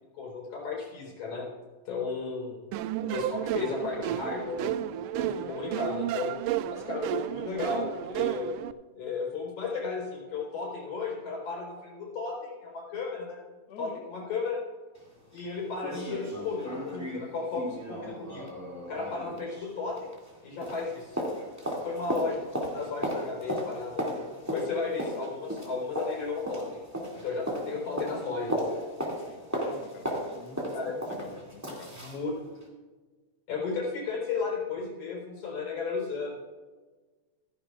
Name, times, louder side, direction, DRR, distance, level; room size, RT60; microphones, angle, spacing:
voice 1, 0.1-1.5 1.9-2.6 3.1-4.8 5.2-6.3 6.7-8.5 9.0-13.4 13.8-14.6 15.3-18.5 18.9-20.1 20.4-21.3 21.8-26.8 27.2-28.7 30.7-30.9 32.0-32.3 33.5-36.4, left 4 dB, 80° left, -1 dB, 5.6 m, -34 dB
sound 1, 2.7-8.7, right 11 dB, 85° right, 1.4 m, -32 dB
voice 2, 13.7-14.0 29.3-31.9, left 5 dB, 60° left, 5 dB, 1.0 m, -48 dB
sound 2, 15.0-15.1 15.4-15.5 15.8-20.4 20.6-32.2 32.6-32.7, equal, 5° right, 1.9 m, -35 dB
15.5 x 15.0 x 2.5 m, 1.3 s
omnidirectional pair, 3.4 m